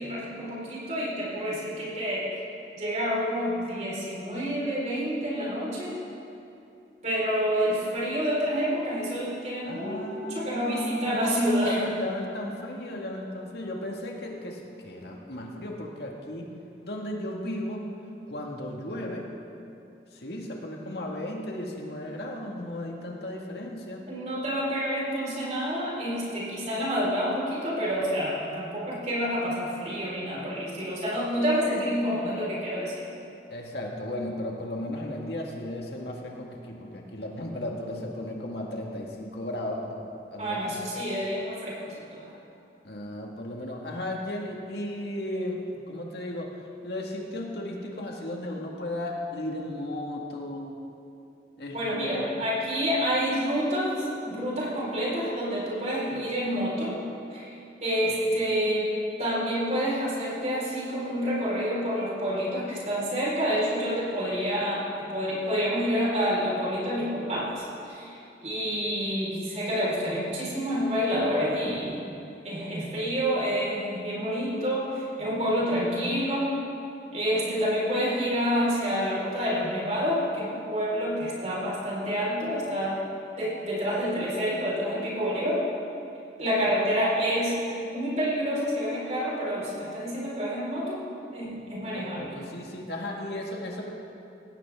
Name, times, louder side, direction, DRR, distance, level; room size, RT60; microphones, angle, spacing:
voice 1, 0.0-2.3 2.7-6.0 7.0-11.8 24.1-33.0 40.4-42.4 51.7-57.0 57.3-57.5 57.8-58.9 59.2-72.0 72.4-76.5 77.1-83.0 83.4-85.6 86.4-91.0 91.3-92.3, equal, 40° right, -6 dB, 4.7 m, -28 dB
voice 2, 9.6-16.5 16.8-17.9 18.3-19.3 20.1-24.1 33.5-40.1 40.3-40.6 42.8-50.7 51.6-52.3 86.6-86.8 91.9-93.9, left 1 dB, 65° left, 0 dB, 1.9 m, -35 dB
19.0 x 17.0 x 3.7 m, 2.7 s
head